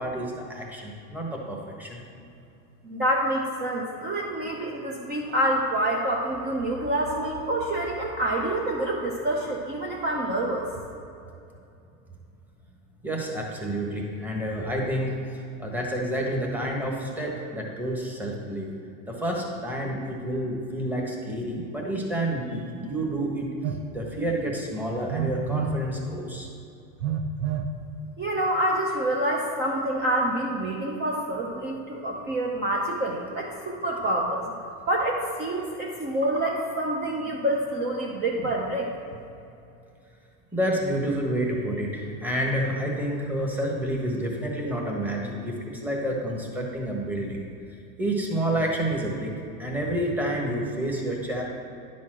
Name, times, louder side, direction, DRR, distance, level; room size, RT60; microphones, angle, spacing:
voice 1, 0.0-2.0 13.0-18.7 19.1-23.5 23.9-26.5 40.5-47.4 48.0-49.3 49.6-51.4, right 1 dB, 5° right, -2 dB, 1.2 m, -29 dB
voice 2, 2.8-10.6 28.2-34.6 34.9-38.9, right 1 dB, 25° right, -2 dB, 0.8 m, -27 dB
Telephone, 23.6-23.8 25.1-25.8 27.0-27.7, right 7 dB, 85° right, 0.9 m, -28 dB
10.5 x 4.2 x 6.2 m, 2.6 s
supercardioid pair, 140°, 41 cm